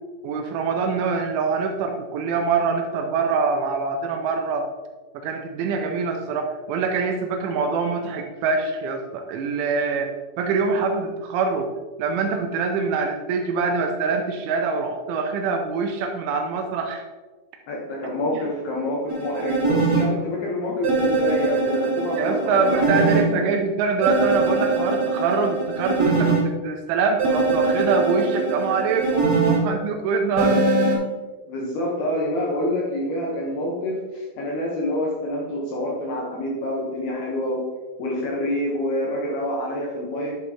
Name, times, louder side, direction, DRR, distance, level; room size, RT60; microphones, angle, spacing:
voice 1, 0.2-4.7 5.1-11.7 12.0-17.0 18.3-18.4 22.1-30.7, right 4 dB, 80° right, 3 dB, 2.9 m, -24 dB
voice 2, 17.7-23.5 31.5-37.7 38.0-40.4, left 1 dB, 70° left, -3 dB, 2.5 m, -27 dB
sound 1, 19.1-20.0 20.8-23.2 24.0-26.4 27.2-29.6 30.4-30.9, right 3 dB, 40° right, 1.5 m, -22 dB
11.0 x 6.6 x 2.9 m, 1.3 s
omnidirectional pair, 5.8 m